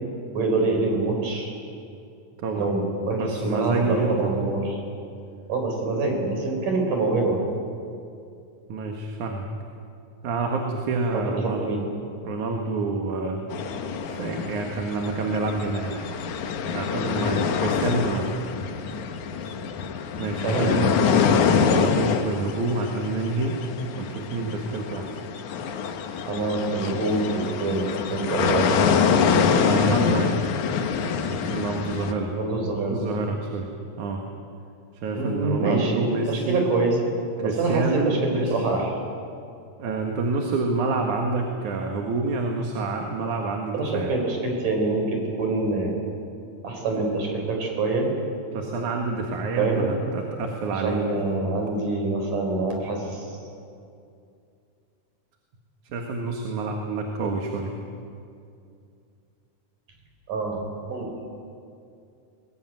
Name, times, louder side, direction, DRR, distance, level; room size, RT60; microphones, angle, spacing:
voice 1, 0.3-1.5 2.6-4.8 5.5-7.4 11.1-11.9 20.4-21.1 26.3-28.7 32.3-33.0 35.1-38.9 43.7-45.9 46.6-48.1 49.6-49.9 50.7-53.4 60.3-60.6 60.9-61.1, right 3 dB, 90° right, 2 dB, 6.1 m, -25 dB
voice 2, 2.4-2.7 3.1-4.3 8.7-9.4 10.2-11.8 12.2-13.4 14.1-16.1 16.7-18.3 20.2-20.9 21.5-23.6 24.0-25.2 29.5-30.4 31.5-32.3 32.9-33.7 34.0-34.2 35.0-36.7 37.4-38.6 39.8-44.2 48.5-51.0 55.9-57.8, right 3 dB, 75° right, 2 dB, 3.1 m, -28 dB
sound 1, 13.5-32.1, left 6 dB, 75° left, 2.6 m, -25 dB
21.5 x 21.0 x 9.2 m, 2.5 s
omnidirectional pair, 3.6 m